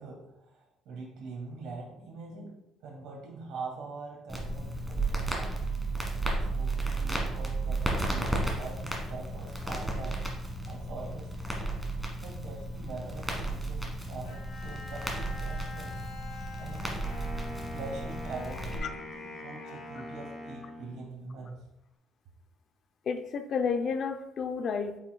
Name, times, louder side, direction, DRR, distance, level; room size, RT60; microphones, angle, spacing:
voice 1, 0.0-2.5 2.8-5.6 6.2-10.3 10.7-11.3 12.2-16.0 16.6-21.6, right 3 dB, 75° right, -1 dB, 2.0 m, -43 dB
Crackle, 4.3-18.8, right 2 dB, 5° right, 1.5 m, -33 dB
Bowed string instrument, 14.2-17.9, left 3 dB, 90° left, 1.9 m, -46 dB
Wind instrument woodwind instrument, 17.0-21.3, left 1 dB, 30° left, 1.5 m, -43 dB
voice 2, 23.1-25.0, left 5 dB, 50° left, 8 dB, 0.6 m, -31 dB
8.1 x 5.8 x 2.3 m, 0.85 s
cardioid pair, 125°, 0 cm